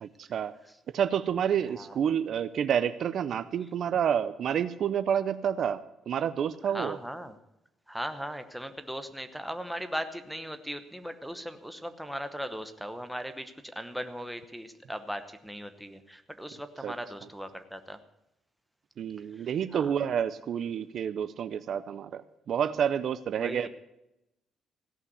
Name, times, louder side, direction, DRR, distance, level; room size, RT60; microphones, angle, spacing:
voice 1, 0.0-0.5 0.9-7.0 16.8-17.0 19.0-23.7, right 8 dB, 55° right, 13 dB, 0.6 m, -29 dB
voice 2, 6.6-7.3 7.9-18.0 19.4-19.9 23.3-23.7, equal, ahead, 8 dB, 1.0 m, -38 dB
16.5 x 5.8 x 9.4 m, 0.87 s
cardioid pair, 130°, 0 cm